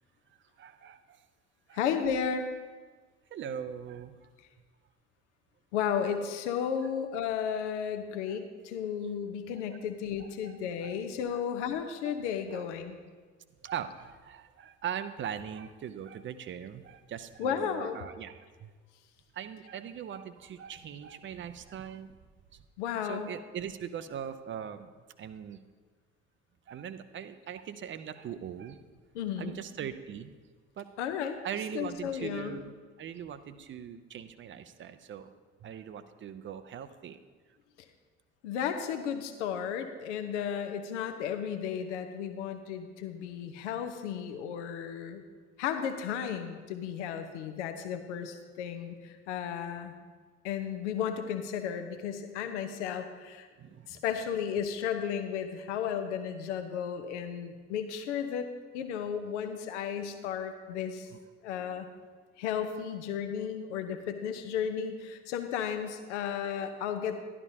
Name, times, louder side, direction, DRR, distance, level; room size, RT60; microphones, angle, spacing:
voice 1, 0.6-1.2 1.7-1.8 3.3-4.1 6.8-6.9 8.3-8.4 9.7-9.8 10.2-10.5 10.8-11.0 11.3-11.7 12.0-12.1 12.5-12.6 13.6-18.7 19.3-22.2 22.5-22.6 23.0-24.9 25.2-25.6 26.7-28.8 29.4-30.3 30.8-30.9 31.4-32.7 33.0-35.3 35.6-37.2 53.6-54.0 61.1-61.2, right 8 dB, 35° right, 12 dB, 0.6 m, -41 dB
voice 2, 1.7-2.5 5.7-13.0 17.4-18.0 22.8-23.3 29.1-29.6 31.0-31.4 31.7-32.6 38.4-45.2 45.6-49.9 50.4-53.5 53.9-61.1 61.4-61.9 62.4-67.2, left 8 dB, 70° left, 8 dB, 0.8 m, -34 dB
11.5 x 11.0 x 2.7 m, 1.5 s
figure-of-eight pair, 50°, 37 cm